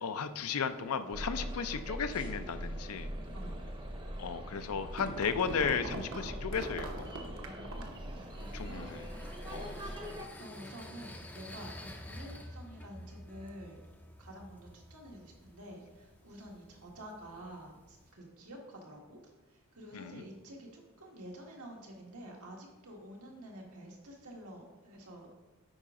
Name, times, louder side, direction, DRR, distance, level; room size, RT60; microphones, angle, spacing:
voice 1, 0.0-3.1 4.2-7.0 8.5-9.0 9.5-9.8 19.9-20.2, left 6 dB, 75° left, 11 dB, 0.5 m, -35 dB
sound 1, 1.1-10.3, equal, 20° right, 0.7 m, -42 dB
voice 2, 3.3-3.7 7.4-9.0 9.5-10.0 10.3-13.8 14.2-25.3, right 1 dB, 85° right, -1 dB, 1.7 m, -49 dB
sound 2, 4.5-8.1, right 2 dB, 60° right, 0.9 m, -42 dB
sound 3, 7.7-18.1, left 1 dB, 10° left, 0.4 m, -50 dB
8.7 x 5.1 x 3.7 m, 1.2 s
head